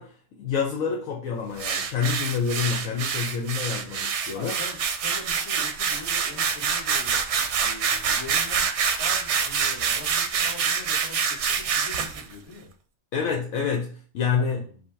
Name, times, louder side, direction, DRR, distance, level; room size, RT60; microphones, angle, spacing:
voice 1, 0.0-4.5 13.1-14.7, left 6 dB, 75° left, 1.1 m, -28 dB
sound 1, 1.6-12.2, right 6 dB, 65° right, 0.8 m, -26 dB
voice 2, 4.3-7.2 7.5-8.6 9.0-12.7 13.1-13.3 14.4-14.8, left 3 dB, 50° left, 1.7 m, -43 dB
5.3 x 2.1 x 4.5 m
omnidirectional pair, 1.4 m